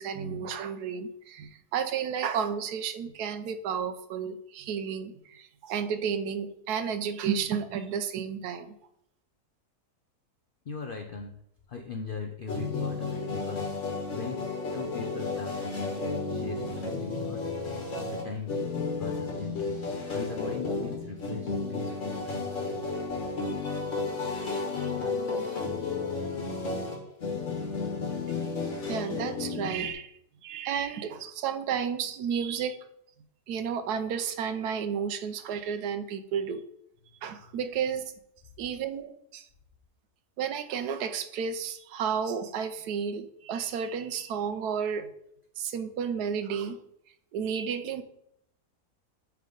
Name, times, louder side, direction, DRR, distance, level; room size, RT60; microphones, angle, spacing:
voice 1, 0.0-8.7 28.9-32.8 33.5-36.6 37.2-38.1 38.6-39.5 40.4-45.1 45.6-46.8 47.3-48.0, right 7 dB, 90° right, 9 dB, 1.2 m, -32 dB
voice 2, 10.7-11.3 11.7-13.7 14.1-14.4 14.7-17.5 18.1-18.5 19.0-19.8 20.1-22.9, left 4 dB, 70° left, 3 dB, 0.5 m, -39 dB
sound 1, 12.5-29.9, left 3 dB, 55° left, 1.5 m, -32 dB
8.7 x 3.5 x 3.8 m, 0.75 s
omnidirectional pair, 1.6 m